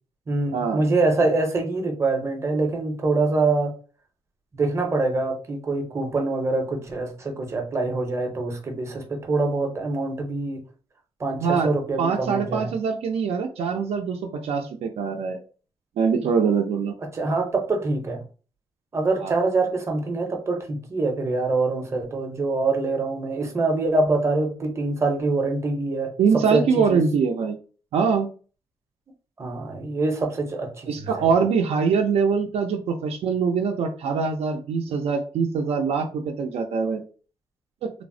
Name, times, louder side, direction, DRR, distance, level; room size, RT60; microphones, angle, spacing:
voice 1, 0.3-3.7 4.5-10.6 11.2-12.7 17.1-18.2 18.9-26.1 26.5-27.0 29.4-31.3 34.9-35.0, right 3 dB, 25° right, 3 dB, 0.6 m, -25 dB
voice 2, 11.4-11.7 12.0-15.4 16.0-16.9 19.2-19.3 26.2-27.6 27.9-28.3 30.9-37.0 37.8-37.9, right 5 dB, 75° right, 2 dB, 0.4 m, -23 dB
3.2 x 2.0 x 2.6 m, 0.37 s
wide cardioid pair, 170°, 10 cm